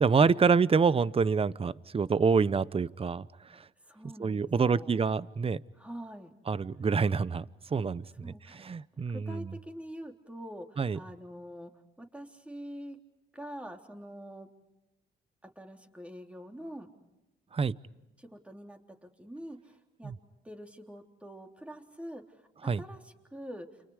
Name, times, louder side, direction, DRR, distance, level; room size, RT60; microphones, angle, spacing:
voice 1, 0.0-3.3 3.5-3.6 4.2-5.6 6.5-7.4 7.7-9.5 10.8-11.0 17.5-17.8 20.0-20.1 22.6-22.8, right 5 dB, 30° right, 18 dB, 0.8 m, -27 dB
voice 2, 3.8-5.0 5.7-6.3 8.2-8.7 9.1-11.7 12.0-13.0 13.3-14.5 15.6-16.9 18.2-20.1 20.4-22.2 22.8-23.7, equal, 5° right, 3 dB, 3.6 m, -45 dB
30.0 x 28.5 x 4.9 m, 0.97 s
cardioid pair, 90°, 20 cm